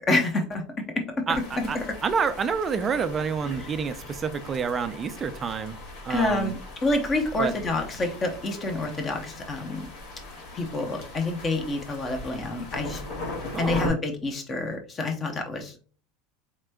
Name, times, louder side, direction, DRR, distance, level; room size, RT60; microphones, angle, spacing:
voice 1, 0.1-1.4 1.8-1.9 3.6-3.7 6.1-9.9 10.5-13.0 13.6-15.9, left 2 dB, 20° left, 5 dB, 0.7 m, -28 dB
sound 1, 1.3-13.9, left 2 dB, 55° left, 2.1 m, -39 dB
voice 2, 1.3-1.8 2.0-5.8 6.0-6.5 7.4-7.5 13.5-13.8, right 6 dB, 20° right, 10 dB, 0.3 m, -28 dB
4.8 x 4.2 x 2.2 m, 0.39 s
supercardioid pair, 170°, 0 cm